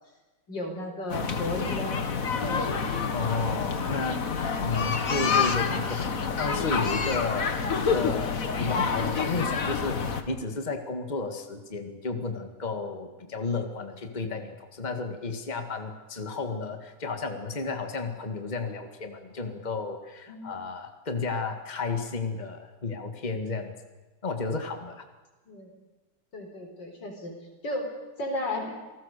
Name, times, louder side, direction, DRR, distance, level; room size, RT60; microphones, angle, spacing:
voice 1, 0.5-2.0 2.3-2.7 20.3-20.5 25.5-25.7 26.3-27.3 27.6-27.9 28.2-28.8, left 1 dB, 90° left, 3 dB, 4.9 m, -34 dB
sound 1, 1.1-10.2, left 5 dB, 50° left, 1.9 m, -28 dB
voice 2, 3.1-23.7 24.2-25.0, left 4 dB, 25° left, 6 dB, 1.9 m, -32 dB
27.5 x 19.0 x 6.8 m, 1.2 s
omnidirectional pair, 1.9 m